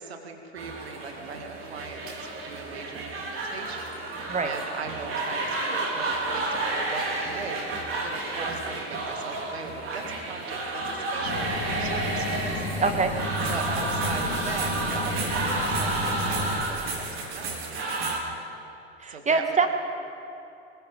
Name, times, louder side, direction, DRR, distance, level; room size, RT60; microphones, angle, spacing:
voice 1, 0.0-2.2 2.4-11.5 11.8-12.7 13.5-18.1 19.1-19.4, right 4 dB, 75° right, 4 dB, 2.1 m, -40 dB
sound 1, 0.6-18.2, right 2 dB, 40° right, 4.5 m, -31 dB
sound 2, 11.2-16.5, left 2 dB, 65° left, 3.8 m, -32 dB
voice 2, 12.8-13.1 19.0-19.7, right 4 dB, 20° right, 6 dB, 2.2 m, -24 dB
25.5 x 21.0 x 5.5 m, 2.8 s
figure-of-eight pair, 65°, 32 cm